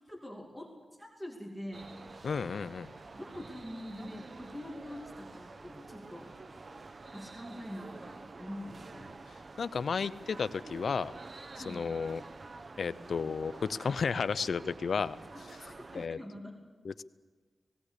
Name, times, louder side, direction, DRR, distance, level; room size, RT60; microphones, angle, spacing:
voice 1, 0.1-0.7 1.0-1.9 3.1-6.7 7.1-9.3 11.6-11.9 15.3-16.6, equal, ahead, 1 dB, 2.7 m, -45 dB
sound 1, 1.7-16.1, right 3 dB, 50° right, 0.9 m, -49 dB
voice 2, 2.2-2.9 9.6-11.1 11.6-12.2 12.8-15.2 15.6-16.2 16.8-17.0, left 5 dB, 75° left, 16 dB, 0.6 m, -33 dB
18.0 x 18.0 x 8.4 m, 1.4 s
cardioid pair, 75°, 0 cm